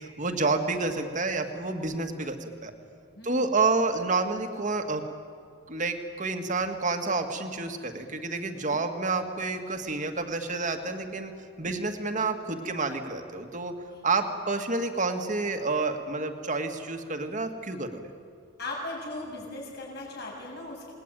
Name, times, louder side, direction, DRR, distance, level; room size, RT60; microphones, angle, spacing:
voice 1, 0.0-2.7 3.2-5.0 5.7-11.3 11.6-13.7 14.0-18.1, right 3 dB, 40° right, 5 dB, 2.1 m, -29 dB
voice 2, 3.1-3.5 13.9-14.0 18.6-20.9, left 2 dB, 55° left, -2 dB, 7.1 m, -38 dB
28.5 x 20.5 x 9.2 m, 2.3 s
head